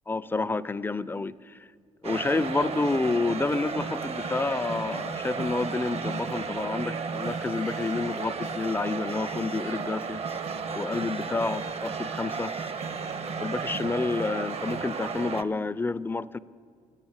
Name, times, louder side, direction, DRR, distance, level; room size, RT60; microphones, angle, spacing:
voice 1, 0.1-1.6 2.0-10.2 10.7-12.5 13.4-16.4, left 3 dB, 15° left, 0.4 m, -29 dB
sound 1, 2.0-15.4, right 5 dB, 40° right, 0.6 m, -33 dB
10.5 x 8.2 x 8.8 m
supercardioid pair, 65°, 16 cm